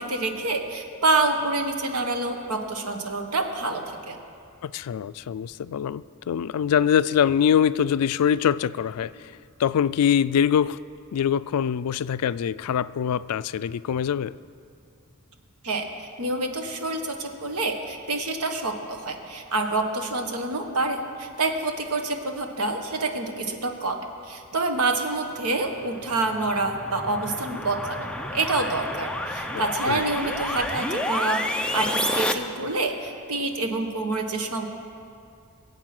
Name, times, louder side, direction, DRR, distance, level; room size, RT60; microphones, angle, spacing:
voice 1, 0.0-4.2 15.6-15.8 16.2-24.0 24.2-28.1 28.3-34.7, right 2 dB, 90° right, 4 dB, 1.4 m, -27 dB
voice 2, 4.6-9.3 9.6-10.8 11.1-14.3 29.5-30.1, left 8 dB, 85° left, 17 dB, 0.4 m, -24 dB
sound 1, 25.8-32.3, left 1 dB, 5° left, 0.6 m, -30 dB
22.5 x 8.0 x 6.0 m, 2.4 s
head